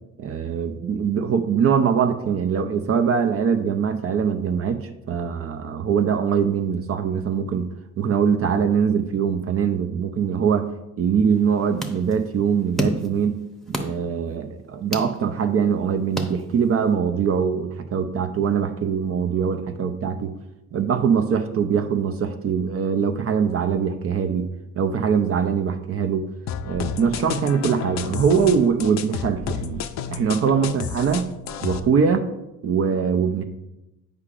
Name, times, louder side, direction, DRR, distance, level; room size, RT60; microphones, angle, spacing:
voice 1, 0.2-7.7 8.0-10.7 11.0-13.4 13.7-20.3 20.7-24.5 24.8-26.3 26.6-31.3 31.6-32.3 32.6-33.4, right 7 dB, 50° right, 8 dB, 0.5 m, -22 dB
sound 1, 11.3-16.9, equal, ahead, 0.8 m, -33 dB
sound 2, 26.5-31.8, left 7 dB, 65° left, 0.5 m, -31 dB
8.2 x 4.8 x 2.5 m, 0.92 s
cardioid pair, 90°, 30 cm